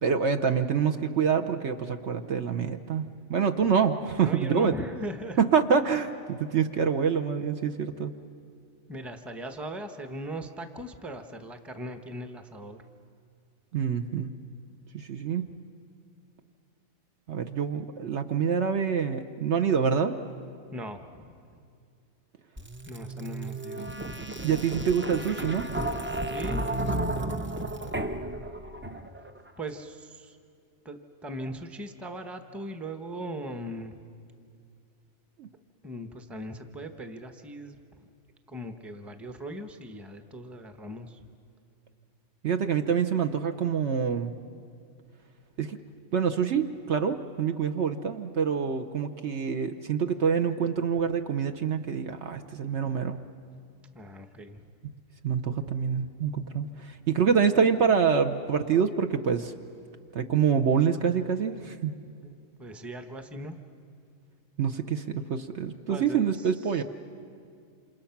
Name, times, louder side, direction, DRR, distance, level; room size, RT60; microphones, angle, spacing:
voice 1, 0.0-3.0 3.3-4.7 5.4-8.1 13.7-14.3 14.9-15.5 17.3-20.1 24.4-25.7 35.4-35.5 42.4-44.3 45.6-45.8 46.1-53.2 55.2-59.5 60.1-61.9 64.6-66.8, right 6 dB, 60° right, 6 dB, 1.0 m, -26 dB
voice 2, 4.2-5.4 8.9-12.8 15.3-15.5 20.7-21.3 22.9-23.9 26.3-26.6 29.6-30.4 30.8-34.0 35.8-38.0 38.5-41.3 53.9-54.7 62.2-62.3 62.6-63.6 65.9-66.8, equal, ahead, 7 dB, 0.8 m, -39 dB
sound 1, 22.6-29.3, right 1 dB, 15° right, 0.4 m, -33 dB
28.0 x 27.0 x 5.9 m, 2.3 s
omnidirectional pair, 1.5 m